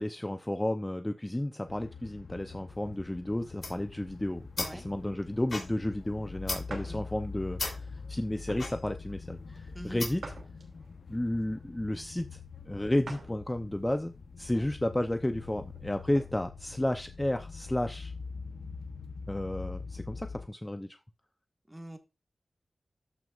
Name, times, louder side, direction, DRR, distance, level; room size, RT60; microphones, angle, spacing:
voice 1, 0.0-10.2 11.1-12.4 12.7-14.1 14.4-18.1 19.3-20.9, left 1 dB, 15° left, 0.6 m, -32 dB
sound 1, 1.7-20.5, left 4 dB, 80° left, 0.9 m, -44 dB
sound 2, 3.5-10.4, left 3 dB, 60° left, 3.2 m, -40 dB
sound 3, 6.7-7.0 7.6-7.7 8.5-8.7 10.2-11.0 13.0-13.4 13.9-14.0 15.6-16.3, right 3 dB, 90° right, 2.6 m, -45 dB
voice 2, 21.7-22.0, equal, 10° right, 1.6 m, -43 dB
13.5 x 6.2 x 2.4 m
wide cardioid pair, 100°, 0 cm